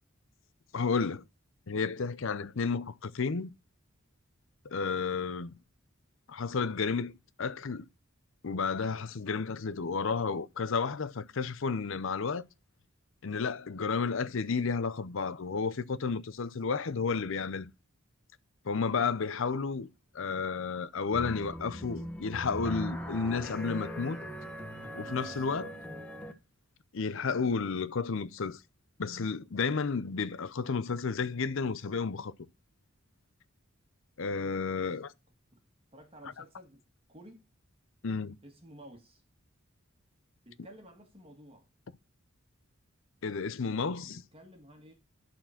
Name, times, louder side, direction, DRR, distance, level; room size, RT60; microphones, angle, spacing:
voice 1, 0.7-1.2 1.7-3.5 4.6-5.5 6.3-7.1 7.4-7.9 8.4-12.4 13.2-17.7 18.6-19.9 20.1-24.2 24.9-25.8 26.9-28.6 29.0-32.3 34.2-35.1 38.0-38.4 43.2-44.2, left 5 dB, 65° left, 0.6 m, -32 dB
sound 1, 21.1-26.3, equal, 5° left, 1.2 m, -40 dB
voice 2, 35.9-36.8 37.1-37.4 38.4-39.2 40.5-41.7 44.0-44.9, equal, 25° right, 1.9 m, -52 dB
11.5 x 4.4 x 5.8 m
head